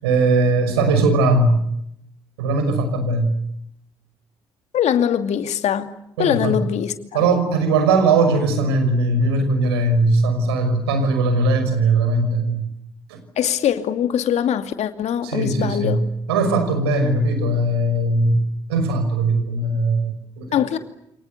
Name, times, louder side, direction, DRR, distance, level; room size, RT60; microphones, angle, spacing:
voice 1, 0.0-1.6 2.4-3.4 6.2-6.6 7.1-12.7 13.1-13.2 15.2-18.4 18.7-20.8, right 2 dB, 80° right, 5.9 m, -19 dB
voice 2, 4.7-5.9 6.2-7.2 13.4-16.0 20.5-20.8, left 9 dB, 60° left, 2.6 m, -22 dB
29.5 x 29.0 x 6.9 m
hypercardioid pair, 45°, 13 cm